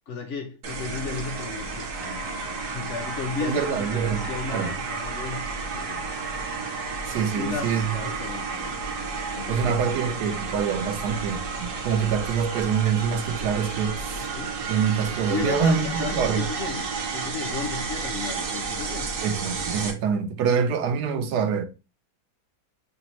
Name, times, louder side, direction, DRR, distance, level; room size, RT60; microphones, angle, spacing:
voice 1, 0.1-5.4 5.7-6.2 7.4-10.5 14.1-14.6 15.3-19.2, left 5 dB, 60° left, 0.8 m, -35 dB
sound 1, 0.6-19.9, right 4 dB, 60° right, 1.0 m, -32 dB
voice 2, 3.4-4.7 7.1-8.0 9.5-14.3 14.7-16.5 19.2-21.6, right 7 dB, 85° right, 1.2 m, -25 dB
5.8 x 2.0 x 2.9 m
omnidirectional pair, 1.7 m